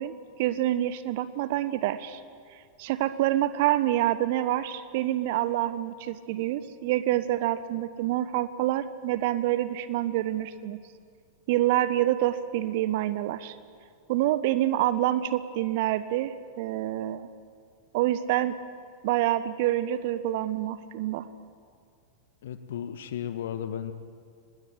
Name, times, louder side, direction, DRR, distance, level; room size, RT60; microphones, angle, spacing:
voice 1, 0.0-2.2 2.8-10.8 11.5-13.6 14.1-17.3 17.9-18.6 19.0-21.3, right 13 dB, 50° right, 13 dB, 1.2 m, -27 dB
voice 2, 22.4-23.9, left 9 dB, 60° left, 10 dB, 1.6 m, -34 dB
24.5 x 20.0 x 9.1 m, 2.2 s
figure-of-eight pair, 90°, 0 cm